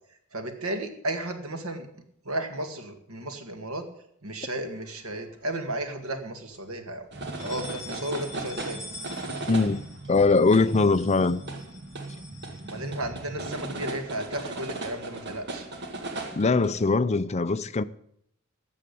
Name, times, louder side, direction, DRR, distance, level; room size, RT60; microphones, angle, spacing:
voice 1, 0.3-1.9 2.3-3.8 4.2-7.1 7.4-8.9 12.7-15.7, right 1 dB, 80° right, 2.0 m, -34 dB
sound 1, 4.7-5.6 6.0-6.1 6.5-6.6 7.2-13.4, left 2 dB, 15° right, 6.5 m, -46 dB
sound 2, 7.1-16.9, right 2 dB, 55° right, 2.1 m, -37 dB
voice 2, 9.5-9.8 10.1-11.4 16.3-17.8, left 3 dB, 30° left, 0.5 m, -21 dB
13.0 x 7.5 x 8.4 m
head